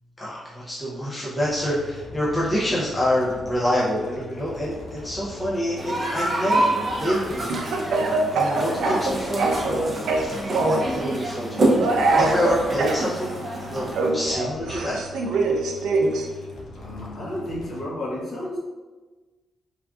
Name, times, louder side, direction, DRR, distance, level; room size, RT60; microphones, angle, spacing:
voice 1, 0.2-7.5 7.8-15.0, equal, 10° left, -8 dB, 0.5 m, -27 dB
sound 1, 1.4-17.8, left 3 dB, 75° left, 0.6 m, -42 dB
sound 2, 5.8-14.1, right 1 dB, 30° right, 0.6 m, -27 dB
Speech / Cough, 7.5-9.8 10.1-10.9 11.8-13.0 13.9-16.3, right 3 dB, 90° right, 0.4 m, -23 dB
voice 2, 16.7-18.6, left 1 dB, 45° left, -6 dB, 0.8 m, -32 dB
3.4 x 2.5 x 2.3 m, 1.3 s
wide cardioid pair, 165°, 0 cm